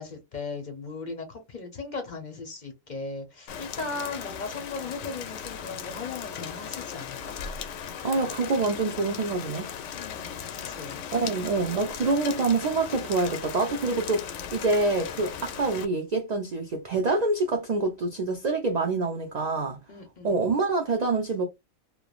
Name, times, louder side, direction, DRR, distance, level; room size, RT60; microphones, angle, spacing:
voice 1, 0.0-7.4 9.9-11.0 19.9-20.4, left 4 dB, 45° left, 0.7 m, -37 dB
Rain, 3.5-15.8, left 8 dB, 70° left, 0.9 m, -37 dB
voice 2, 8.0-9.7 11.1-19.8 20.2-21.5, right 3 dB, 70° right, 0.4 m, -26 dB
3.2 x 2.2 x 2.3 m
omnidirectional pair, 1.3 m